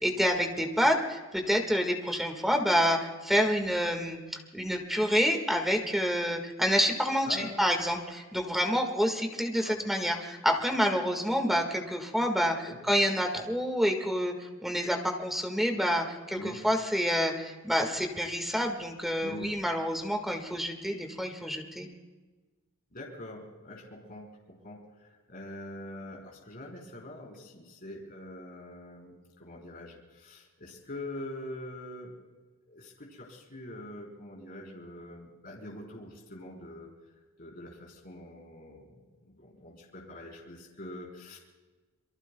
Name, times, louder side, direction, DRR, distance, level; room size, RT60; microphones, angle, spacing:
voice 1, 0.0-14.3 14.6-16.4 16.6-21.9, equal, ahead, 3 dB, 1.7 m, -28 dB
voice 2, 7.3-7.6 9.6-9.8 12.7-12.8 16.4-16.6 19.2-19.5 22.9-32.1 32.7-36.9 37.4-41.4, left 1 dB, 45° left, -2 dB, 4.0 m, -44 dB
27.5 x 23.0 x 2.3 m, 1.3 s
head